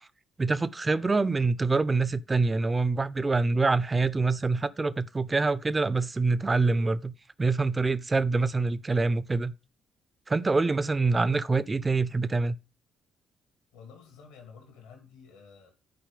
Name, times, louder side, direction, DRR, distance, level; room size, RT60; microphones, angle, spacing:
voice 1, 0.4-9.5 10.3-12.6, right 3 dB, 25° right, 0.7 m, -25 dB
voice 2, 13.7-15.7, left 6 dB, 75° left, 2.5 m, -51 dB
10.5 x 4.9 x 5.0 m
figure-of-eight pair, 45°, 0 cm